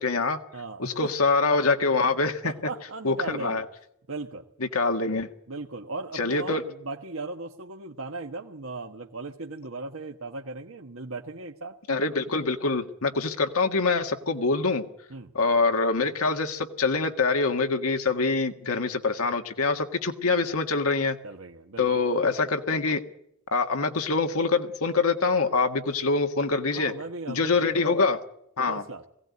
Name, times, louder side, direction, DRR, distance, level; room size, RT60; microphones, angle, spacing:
voice 1, 0.0-0.4 0.8-2.5 3.0-3.6 4.6-5.3 6.1-6.6 11.9-14.8 15.3-21.2 21.8-23.0 23.5-26.9 27.3-28.2 28.6-28.8, left 3 dB, 90° left, 6 dB, 1.6 m, -25 dB
voice 2, 0.5-1.1 2.4-3.6 4.1-4.5 5.5-11.8 15.1-15.3 21.2-21.9 26.7-27.7 28.7-29.0, right 3 dB, 75° right, 3 dB, 1.3 m, -37 dB
21.5 x 16.5 x 9.5 m, 0.77 s
head